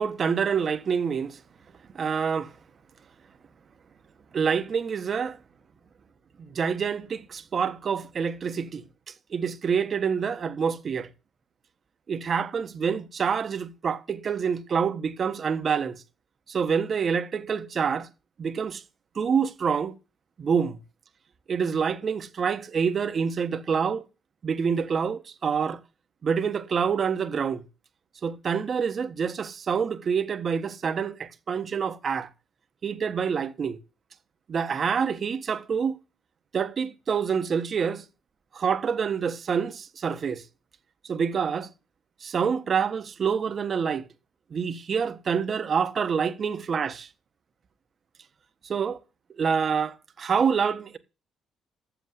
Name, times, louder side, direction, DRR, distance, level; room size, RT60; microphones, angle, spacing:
voice 1, 0.0-1.4 1.9-2.5 4.3-5.4 6.5-11.1 12.1-16.0 16.5-18.1 18.4-18.8 19.1-19.9 20.4-20.8 21.5-24.0 24.4-25.8 26.2-27.6 28.2-32.3 32.8-33.8 34.5-36.0 36.5-38.0 38.5-40.4 41.1-41.7 42.2-44.1 44.5-46.9 48.6-49.0 49.4-51.0, right 6 dB, 45° right, 1.2 m, -27 dB
8.1 x 7.2 x 7.8 m
cardioid pair, 85°, 0 cm